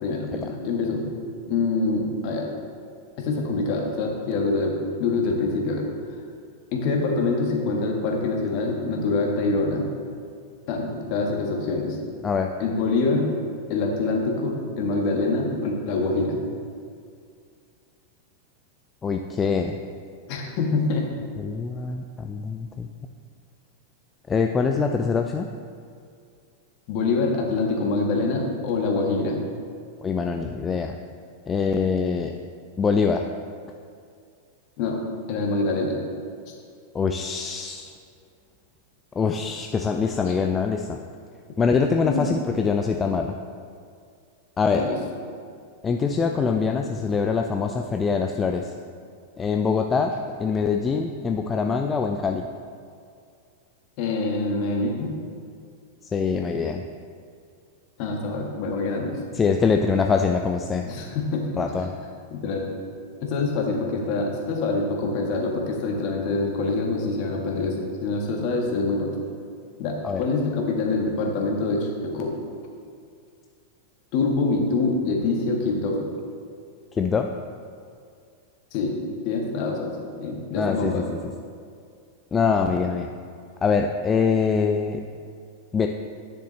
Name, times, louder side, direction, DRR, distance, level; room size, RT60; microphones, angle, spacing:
voice 1, 0.0-1.1 1.5-2.5 3.2-5.9 6.7-9.8 10.7-12.0 12.6-13.3 13.7-16.4 20.3-21.1 26.9-29.4 34.8-35.0 35.3-36.0 36.5-36.6 40.3-40.4 42.1-42.3 44.7-45.0 54.0-55.1 58.0-59.1 60.9-61.5 62.3-62.6 63.2-69.1 69.8-72.4 74.1-76.0 78.7-79.0 79.2-79.9 80.2-81.0, left 3 dB, 45° left, 1 dB, 1.4 m, -25 dB
voice 2, 19.0-19.8 21.4-22.9 24.3-25.5 30.0-30.9 31.5-32.3 32.8-33.2 36.9-37.9 39.2-41.0 41.6-43.4 44.6-44.9 45.8-48.7 49.4-50.1 50.4-52.5 56.1-56.8 59.3-60.8 61.6-61.9 70.0-70.2 76.9-77.3 80.5-81.0 82.3-83.1 83.6-85.0 85.7-85.9, left 5 dB, 20° left, 4 dB, 0.4 m, -24 dB
10.0 x 6.6 x 3.2 m, 2.3 s
figure-of-eight pair, 90°, 0 cm